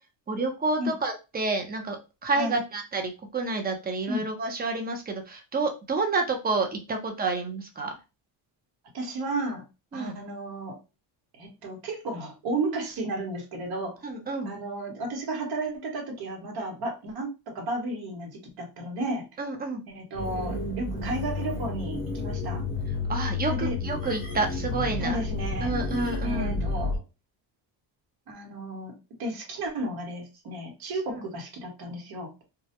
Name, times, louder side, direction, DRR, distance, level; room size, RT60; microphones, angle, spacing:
voice 1, 0.3-7.9 9.9-10.2 14.0-14.5 19.4-19.8 23.1-25.3 25.6-26.5 31.1-31.2, right 3 dB, 20° right, 4 dB, 0.5 m, -29 dB
voice 2, 8.9-9.6 9.9-10.8 11.4-14.0 14.4-19.3 19.9-22.6 23.5-23.8 25.0-25.7 26.2-27.0 28.3-28.9 29.2-32.3, right 2 dB, 55° right, 1 dB, 1.0 m, -33 dB
sound 1, 20.1-27.0, left 3 dB, 30° left, 0.7 m, -31 dB
2.2 x 2.1 x 2.7 m, 0.27 s
cardioid pair, 120°, 46 cm